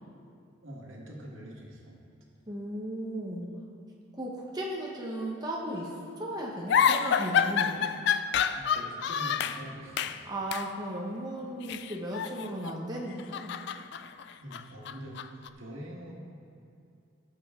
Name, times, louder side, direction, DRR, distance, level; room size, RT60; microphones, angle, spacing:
voice 1, 0.6-2.0 8.5-10.3 14.4-16.1, equal, 80° right, -2 dB, 1.7 m, -44 dB
voice 2, 2.5-3.5 4.1-7.9 10.2-13.6, right 1 dB, 20° right, -3 dB, 1.0 m, -36 dB
sound 1, 6.7-9.6 10.0-10.2 10.5-10.7 11.6-12.8 13.1-15.5, left 7 dB, 55° left, 0.3 m, -28 dB
14.5 x 7.5 x 3.7 m, 2.5 s
head